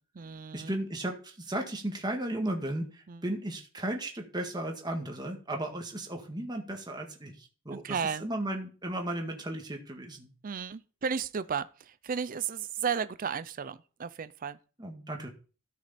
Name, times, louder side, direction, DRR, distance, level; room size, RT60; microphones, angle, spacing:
voice 1, 0.0-0.7 3.1-3.2 7.7-8.2 10.4-14.6, right 6 dB, 40° right, 0.5 m, -34 dB
voice 2, 0.5-10.3 14.8-15.3, right 1 dB, 20° right, 1.7 m, -35 dB
13.0 x 6.3 x 4.2 m
head